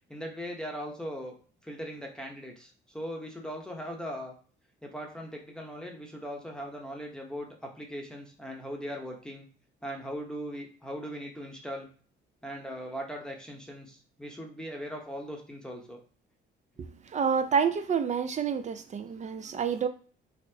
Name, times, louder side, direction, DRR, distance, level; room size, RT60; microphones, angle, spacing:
voice 1, 0.1-1.3 1.6-4.3 4.8-9.5 9.8-11.9 12.4-16.0, equal, 5° left, 1 dB, 0.8 m, -39 dB
voice 2, 16.8-19.9, right 7 dB, 35° right, 9 dB, 0.4 m, -28 dB
4.1 x 2.0 x 2.7 m, 0.40 s
cardioid pair, 90°, 20 cm